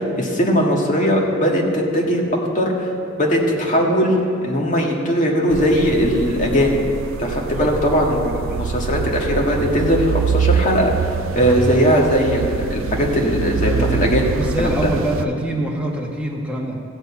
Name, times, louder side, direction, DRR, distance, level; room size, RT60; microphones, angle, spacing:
voice 1, 0.0-2.2 2.5-2.9 3.2-4.2 4.4-6.8 7.2-10.9 11.3-14.2 14.6-14.7, equal, 40° left, -1 dB, 1.7 m, -19 dB
sound 1, 5.5-15.2, right 7 dB, 65° right, 0.4 m, -25 dB
voice 2, 11.3-11.8 13.6-16.8, equal, 5° right, -2 dB, 1.5 m, -25 dB
15.5 x 5.3 x 8.2 m, 2.4 s
head